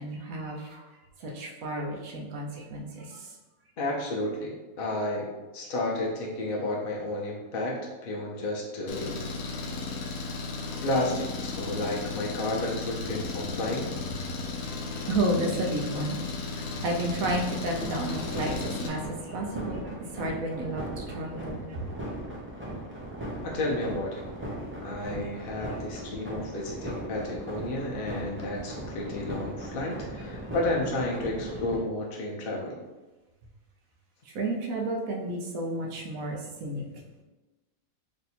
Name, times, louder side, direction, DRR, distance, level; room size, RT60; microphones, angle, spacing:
voice 1, 0.0-3.4 9.6-10.0 15.1-16.2 16.5-21.8 25.0-25.1 25.7-25.8 34.2-37.0, right 1 dB, 75° right, 1 dB, 1.1 m, -32 dB
voice 2, 3.8-5.3 5.5-9.2 10.8-13.9 23.4-24.2 24.8-32.8, left 1 dB, 50° left, -2 dB, 0.7 m, -31 dB
Engine, 8.9-18.9, left 3 dB, 75° left, 1.0 m, -35 dB
sound 1, 17.2-31.8, right 1 dB, 20° right, 0.3 m, -38 dB
3.2 x 2.6 x 4.2 m, 1.1 s
omnidirectional pair, 1.5 m